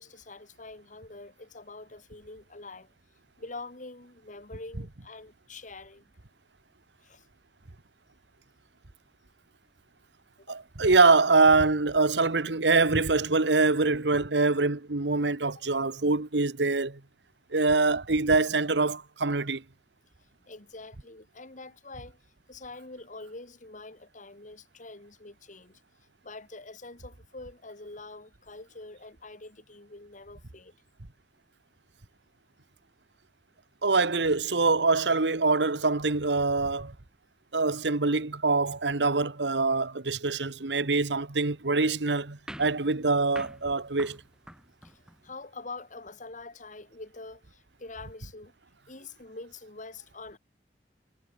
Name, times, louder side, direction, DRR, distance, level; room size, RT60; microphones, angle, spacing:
voice 1, 0.0-2.9 3.4-6.0 7.0-7.3 10.5-10.6 20.5-22.2 22.5-25.8 26.2-30.8 44.8-48.5 48.9-50.4, left 3 dB, 45° left, 3.1 m, -45 dB
voice 2, 10.5-17.0 17.5-19.6 33.8-36.9 37.5-44.2, right 3 dB, 85° right, 1.4 m, -24 dB
sound 1, 42.5-45.4, equal, 5° right, 7.8 m, -47 dB
head